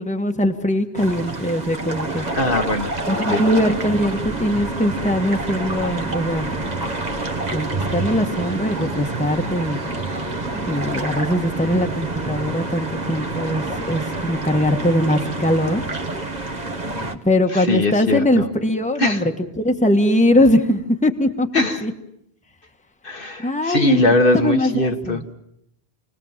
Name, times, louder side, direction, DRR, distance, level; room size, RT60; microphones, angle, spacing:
voice 1, 0.0-2.3 3.1-6.5 7.5-9.8 10.5-15.9 17.2-21.5 21.8-21.9 23.4-24.0 24.3-25.2, left 1 dB, 5° left, 5 dB, 1.4 m, -21 dB
sound 1, 0.9-17.2, right 2 dB, 40° right, 1.5 m, -27 dB
voice 2, 2.1-2.9 3.3-3.4 17.5-18.5 19.0-19.3 21.5-21.8 23.0-25.2, left 1 dB, 55° left, 4 dB, 1.7 m, -21 dB
28.5 x 19.5 x 7.4 m, 0.77 s
omnidirectional pair, 1.1 m